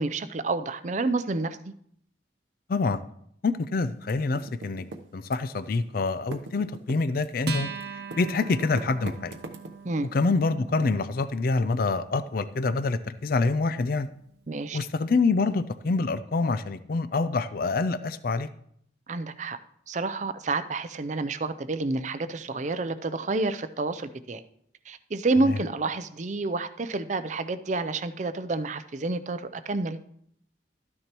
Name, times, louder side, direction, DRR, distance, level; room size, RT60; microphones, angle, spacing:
voice 1, 0.0-1.7 9.8-10.1 14.5-14.8 19.1-19.6 19.9-24.4 24.9-30.0, right 3 dB, 40° right, 12 dB, 0.5 m, -29 dB
voice 2, 2.7-3.0 3.4-4.8 5.1-7.7 8.2-9.3 10.1-14.1 14.7-18.5 25.5-25.6, left 3 dB, 50° left, 13 dB, 0.4 m, -26 dB
Typing, 4.0-5.7 6.0-10.0, right 2 dB, 85° right, 0.9 m, -41 dB
Acoustic guitar, 7.5-14.3, right 3 dB, 55° right, 0.9 m, -41 dB
13.0 x 9.7 x 3.0 m, 0.69 s
head